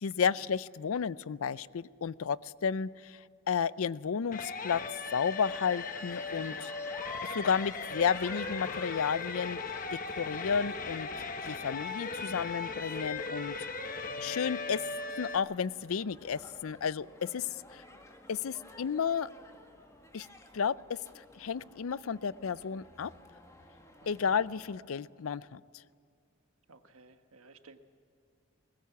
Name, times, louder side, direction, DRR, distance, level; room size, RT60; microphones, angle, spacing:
voice 1, 0.0-3.2 3.5-4.8 5.1-6.7 7.2-9.6 9.9-11.1 11.5-13.6 14.2-14.8 15.2-17.8 18.3-19.3 20.1-20.3 20.5-23.1 24.1-25.6, left 6 dB, 80° left, 19 dB, 0.5 m, -32 dB
sound 1, 4.3-15.4, left 4 dB, 40° left, 1.0 m, -38 dB
sound 2, 5.0-24.7, left 1 dB, 15° left, 1.9 m, -52 dB
voice 2, 11.4-11.8 24.0-24.3 26.7-27.8, right 3 dB, 90° right, 7 dB, 1.4 m, -56 dB
21.5 x 19.0 x 8.4 m, 2.4 s
head